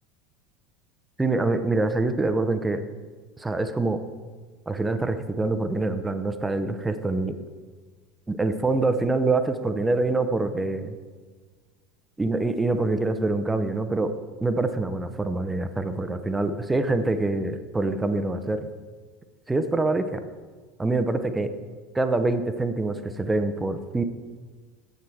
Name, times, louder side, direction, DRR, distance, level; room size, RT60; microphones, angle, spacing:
voice 1, 1.2-2.8 3.4-4.0 4.7-7.4 8.3-10.9 12.2-14.1 14.4-18.7 19.5-20.2 20.8-21.5 21.9-24.0, right 2 dB, 10° right, 10 dB, 0.8 m, -25 dB
9.5 x 8.1 x 4.6 m, 1.4 s
figure-of-eight pair, 75°, 0 cm